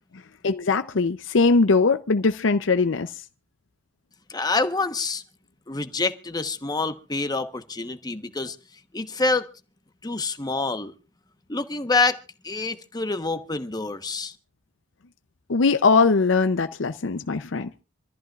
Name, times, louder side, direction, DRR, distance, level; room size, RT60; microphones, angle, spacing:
voice 1, 0.4-3.1 15.5-17.7, left 4 dB, 80° left, 0.6 m, -21 dB
voice 2, 4.3-5.2 5.7-8.6 8.9-9.5 10.0-10.9 11.5-12.2 12.4-14.3, left 3 dB, 20° left, 1.1 m, -26 dB
27.0 x 14.0 x 2.4 m
head